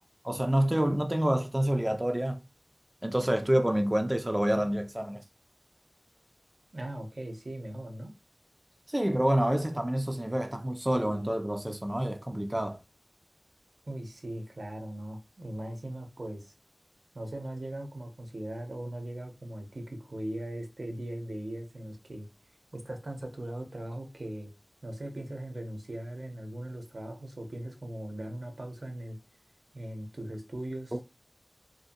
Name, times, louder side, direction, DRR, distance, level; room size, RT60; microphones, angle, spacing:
voice 1, 0.2-2.4 3.0-5.2 8.9-12.8 30.9-31.0, right 1 dB, 20° right, 0.3 m, -27 dB
voice 2, 6.7-8.1 13.9-16.5 17.1-22.3 22.7-24.5 24.8-29.2 29.7-31.0, right 1 dB, 70° right, 0.6 m, -39 dB
2.5 x 2.5 x 2.5 m
wide cardioid pair, 55°, 0 cm